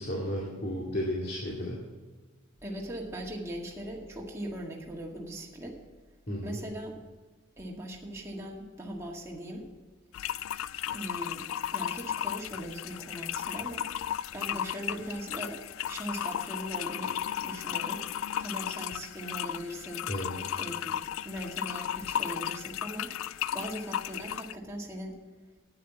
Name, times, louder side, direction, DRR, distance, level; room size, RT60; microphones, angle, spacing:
voice 1, 0.0-1.8 6.3-6.6 20.1-20.3, equal, 50° left, -4 dB, 2.2 m, -33 dB
voice 2, 2.6-5.8 6.4-6.9 7.6-9.7 10.9-13.9 14.3-15.6 15.9-18.1 18.4-20.1 20.5-21.0 21.2-23.1 23.5-25.2, right 1 dB, 15° right, -2 dB, 1.9 m, -39 dB
sound 1, 10.1-24.6, left 10 dB, 85° left, 0.3 m, -35 dB
10.0 x 9.5 x 6.1 m, 1.4 s
head